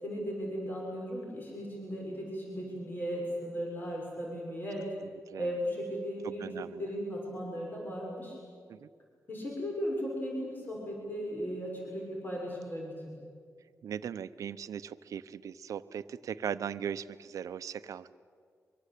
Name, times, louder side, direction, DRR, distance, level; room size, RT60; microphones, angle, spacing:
voice 1, 0.0-4.9 5.4-6.5 6.8-8.4 9.3-13.1, equal, 35° left, -2 dB, 6.8 m, -36 dB
voice 2, 5.0-5.5 6.2-6.9 8.7-8.9 13.8-18.1, right 8 dB, 80° right, 13 dB, 0.8 m, -39 dB
24.5 x 24.0 x 8.5 m, 2.1 s
cardioid pair, 95°, 6 cm